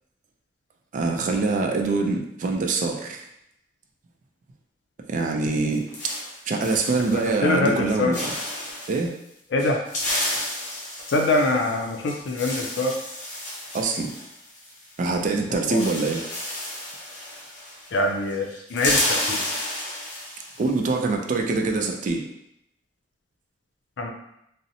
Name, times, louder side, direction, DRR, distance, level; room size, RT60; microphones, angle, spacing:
voice 1, 0.9-3.2 5.1-5.9 6.5-8.2 8.9-9.2 13.7-14.1 15.0-16.2 20.6-22.3, right 3 dB, 45° right, 3 dB, 0.3 m, -24 dB
sound 1, 5.4-7.4 7.7-9.0 9.6-15.0 15.3-15.4 15.6-18.0 18.3-20.7, left 1 dB, 45° left, 0.7 m, -31 dB
voice 2, 7.1-8.1 9.5-9.8 11.1-12.9 15.5-15.8 17.9-19.4 24.0-24.1, left 2 dB, 80° left, 2 dB, 0.4 m, -24 dB
2.6 x 2.0 x 2.7 m, 0.79 s
head